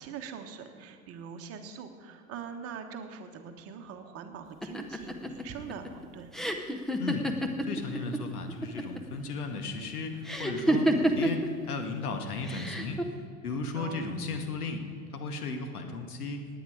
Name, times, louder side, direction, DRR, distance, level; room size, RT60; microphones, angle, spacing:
voice 1, 0.0-6.3 13.7-14.1, right 7 dB, 30° right, 5 dB, 1.3 m, -43 dB
sound 1, 4.6-8.2 8.5-9.2 10.3-11.5 12.5-13.0, right 1 dB, ahead, 0.6 m, -28 dB
voice 2, 7.7-11.4 11.7-13.0 13.4-14.8 15.1-16.5, left 3 dB, 70° left, 5 dB, 1.8 m, -35 dB
18.5 x 9.1 x 4.9 m, 2.2 s
figure-of-eight pair, 100°, 46 cm